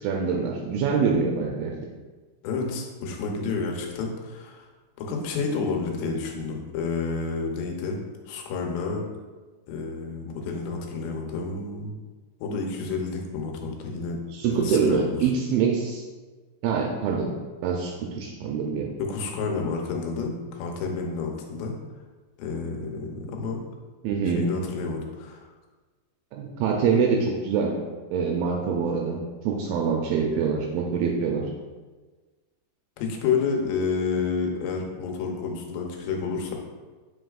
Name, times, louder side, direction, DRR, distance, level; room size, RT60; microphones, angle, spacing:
voice 1, 0.0-1.7 14.3-16.0 16.6-17.3 17.6-18.9 24.0-24.4 26.3-27.7 28.1-31.5, right 6 dB, 85° right, 0 dB, 2.2 m, -25 dB
voice 2, 2.4-4.7 5.0-9.0 9.7-12.0 12.4-14.2 14.5-15.3 19.0-21.7 22.4-23.6 24.4-25.5 33.0-36.6, left 4 dB, 85° left, 1 dB, 3.0 m, -30 dB
7.6 x 5.3 x 2.4 m, 1.3 s
omnidirectional pair, 4.8 m